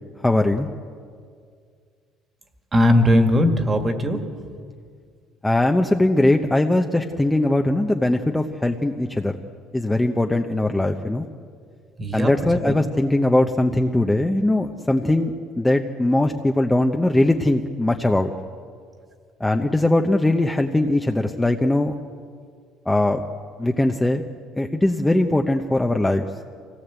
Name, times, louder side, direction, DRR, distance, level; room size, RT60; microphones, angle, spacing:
voice 1, 0.2-0.7 5.4-9.3 9.7-11.3 12.1-18.3 19.4-21.9 22.9-23.2 23.6-24.2 24.6-26.3, left 1 dB, 10° left, 4 dB, 0.8 m, -20 dB
voice 2, 2.7-4.5 12.0-12.3 12.7-12.8, left 1 dB, 20° right, 6 dB, 1.9 m, -19 dB
25.0 x 17.5 x 8.2 m, 2.1 s
cardioid pair, 135°, 0 cm